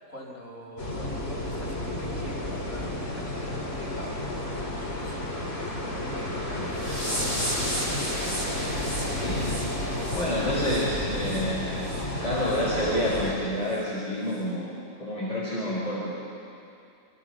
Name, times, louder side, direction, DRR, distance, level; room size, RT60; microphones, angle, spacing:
voice 1, 0.1-8.4, equal, 70° left, -3 dB, 5.1 m, -45 dB
sound 1, 0.8-13.3, left 1 dB, 50° left, 3.2 m, -31 dB
sound 2, 6.7-11.4 11.8-12.0 12.5-12.6 13.1-13.2 13.7-13.8, equal, 35° right, 7.2 m, -34 dB
voice 2, 9.2-9.6 10.1-11.8 12.2-14.7 15.0-16.1, equal, 30° left, -8 dB, 4.8 m, -28 dB
27.5 x 26.0 x 4.9 m, 2.6 s
omnidirectional pair, 1.4 m